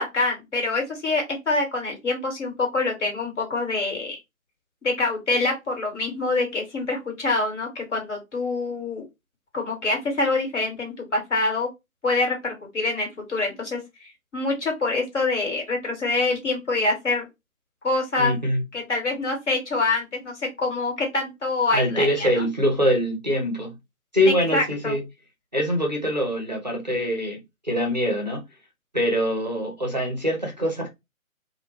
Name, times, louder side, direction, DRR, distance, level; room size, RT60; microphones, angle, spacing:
voice 1, 0.0-4.2 4.8-9.0 9.5-11.7 12.0-17.3 17.8-18.3 18.7-22.5 24.5-25.0, left 3 dB, 55° left, 1.3 m, -25 dB
voice 2, 18.2-18.6 21.7-23.7 24.1-25.0 25.5-27.4 27.6-28.4 28.9-30.9, equal, 35° right, 0.5 m, -24 dB
2.1 x 2.1 x 3.0 m
figure-of-eight pair, 145°, 42 cm